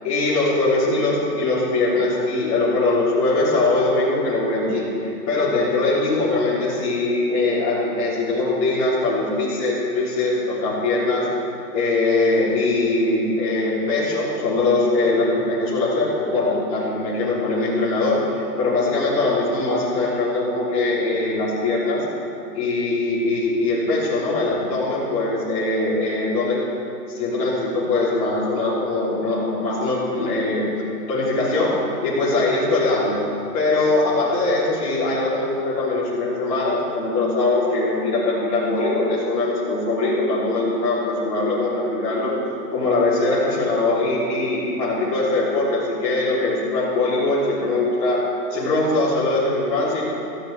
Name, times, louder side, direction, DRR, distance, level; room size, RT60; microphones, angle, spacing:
voice 1, 0.0-11.3 11.7-22.0 22.5-26.6 27.1-30.6 31.1-33.2 33.5-42.3 42.7-48.2 48.5-50.1, left 2 dB, 20° left, -8 dB, 3.7 m, -21 dB
17.5 x 15.0 x 3.6 m, 2.7 s
hypercardioid pair, 165°, 48 cm